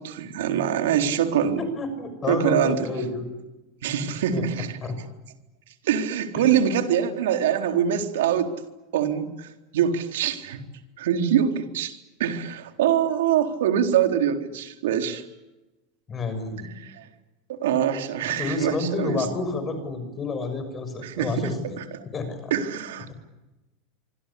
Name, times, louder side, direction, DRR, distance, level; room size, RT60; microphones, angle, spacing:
voice 1, 0.0-1.6 2.3-2.9 3.8-4.8 5.8-8.5 8.9-10.6 11.0-15.2 16.6-17.1 17.5-19.3 21.0-22.0 22.5-23.1, right 9 dB, 85° right, 6 dB, 4.1 m, -24 dB
voice 2, 1.6-3.3 4.3-4.4 4.8-5.0 6.4-6.5 16.1-16.7 18.4-21.8 22.1-22.5, left 3 dB, 20° left, 9 dB, 6.6 m, -29 dB
26.5 x 25.5 x 8.6 m, 1.0 s
supercardioid pair, 165°, 0 cm